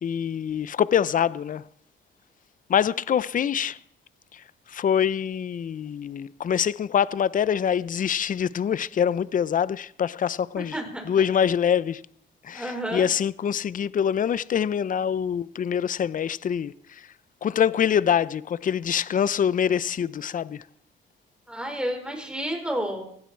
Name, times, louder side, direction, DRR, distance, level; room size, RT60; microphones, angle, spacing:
voice 1, 0.0-1.6 2.7-3.8 4.3-10.8 11.0-12.0 12.4-17.1 17.4-20.6, left 8 dB, 40° left, 0.6 m, -25 dB
voice 2, 10.6-11.1 12.5-13.0 21.5-23.0, equal, 5° right, 5.2 m, -30 dB
19.0 x 16.0 x 4.6 m
cardioid pair, 90°, 20 cm